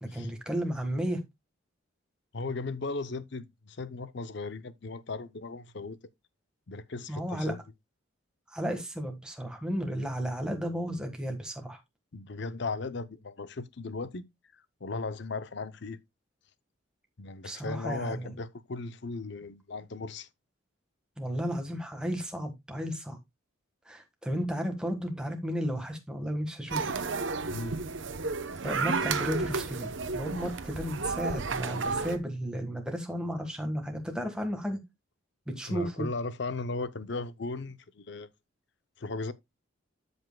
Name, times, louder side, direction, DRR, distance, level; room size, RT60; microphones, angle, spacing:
voice 1, 0.0-1.2 7.1-7.5 8.5-11.8 17.4-18.3 21.2-23.2 23.9-26.9 28.6-29.9 30.1-34.8 35.5-36.1, equal, 5° right, 1.5 m, -33 dB
voice 2, 2.3-6.0 6.7-7.6 12.1-14.2 14.5-16.0 17.2-20.3 27.4-27.8 35.7-38.3 39.0-39.3, left 3 dB, 55° left, 0.6 m, -37 dB
sound 1, 26.7-32.2, right 4 dB, 60° right, 0.8 m, -32 dB
13.5 x 5.4 x 2.2 m
head